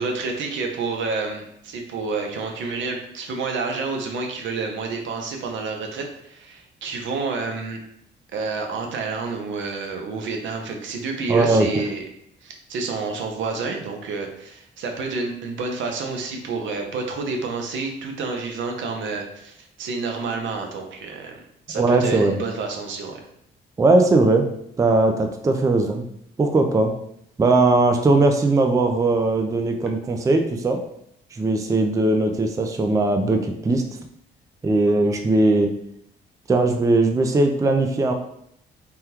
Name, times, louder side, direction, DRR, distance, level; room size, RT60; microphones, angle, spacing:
voice 1, 0.0-7.8 8.3-12.0 12.4-21.4 21.7-23.2, right 4 dB, 70° right, 2 dB, 0.7 m, -29 dB
voice 2, 11.3-11.7 21.7-22.4 23.8-24.5 24.8-26.0 26.4-26.9 27.4-30.8 31.3-33.8 34.6-35.7 36.5-38.1, right 2 dB, 15° right, 5 dB, 0.3 m, -19 dB
3.5 x 2.2 x 2.9 m, 0.73 s
cardioid pair, 90°, 20 cm